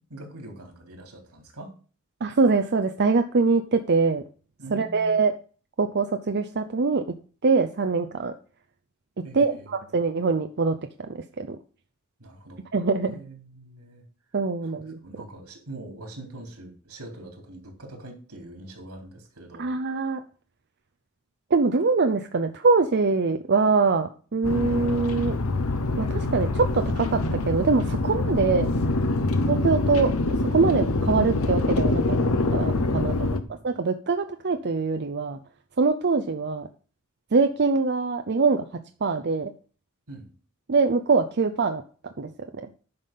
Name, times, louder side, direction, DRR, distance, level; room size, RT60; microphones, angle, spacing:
voice 1, 0.0-1.7 4.6-5.2 9.2-9.8 12.2-12.6 13.0-14.0 14.6-19.7 29.2-29.4 32.9-33.8 40.1-40.3, right 2 dB, 85° right, 3 dB, 3.5 m, -43 dB
voice 2, 2.2-4.2 4.7-5.3 5.8-7.0 7.4-8.3 9.4-10.7 11.4-11.6 12.7-13.2 14.3-15.0 19.6-20.2 21.5-25.3 26.0-28.7 29.5-30.1 30.5-32.0 32.5-33.1 33.6-35.4 35.8-36.7 37.3-38.6 39.0-39.5 40.7-41.8 42.2-42.3, right 4 dB, 50° right, 7 dB, 0.6 m, -23 dB
sound 1, 24.4-33.4, left 2 dB, 70° left, 1.0 m, -25 dB
10.5 x 5.7 x 5.4 m, 0.39 s
head